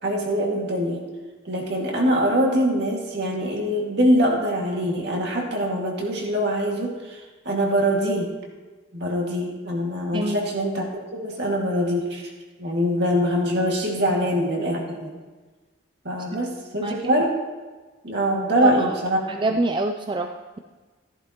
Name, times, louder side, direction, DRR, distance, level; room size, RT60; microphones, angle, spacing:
voice 1, 0.0-1.0 1.4-8.3 8.9-10.9 11.1-12.2 12.6-15.2 16.0-17.3 18.0-19.2, equal, 55° right, -1 dB, 2.1 m, -23 dB
voice 2, 19.3-20.6, right 2 dB, 25° right, 5 dB, 0.4 m, -26 dB
15.0 x 10.5 x 3.0 m, 1.3 s
head